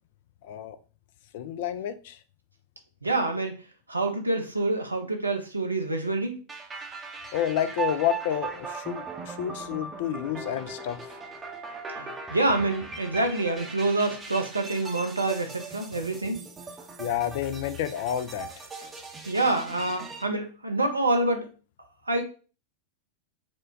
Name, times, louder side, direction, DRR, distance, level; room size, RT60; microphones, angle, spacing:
voice 1, 0.4-0.8 1.3-2.2 7.3-11.0 17.0-18.5, left 10 dB, 50° left, 0.3 m, -29 dB
voice 2, 3.0-3.5 3.9-6.3 12.0-16.4 19.2-21.5 22.1-22.2, right 2 dB, 80° right, 0.6 m, -27 dB
sound 1, 6.5-20.2, right 4 dB, 20° right, 0.6 m, -39 dB
4.4 x 2.1 x 2.6 m
figure-of-eight pair, 90°, 0 cm